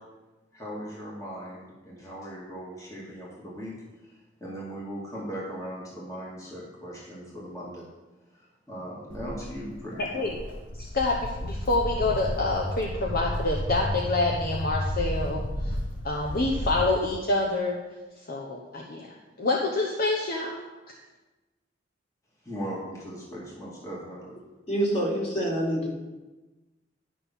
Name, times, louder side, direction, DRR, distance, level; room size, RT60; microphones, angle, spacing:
voice 1, 0.5-3.7 4.0-7.9 8.3-10.2 22.4-24.4, equal, 20° left, -5 dB, 2.3 m, -39 dB
Walk footsteps, 9.1-16.8, equal, 90° left, 1.8 m, -32 dB
voice 2, 10.8-15.7 16.0-17.8 18.3-20.7, left 2 dB, 55° left, -1 dB, 1.0 m, -27 dB
voice 3, 24.7-25.9, right 1 dB, 35° left, -5 dB, 4.0 m, -26 dB
11.0 x 6.1 x 5.6 m, 1.1 s
head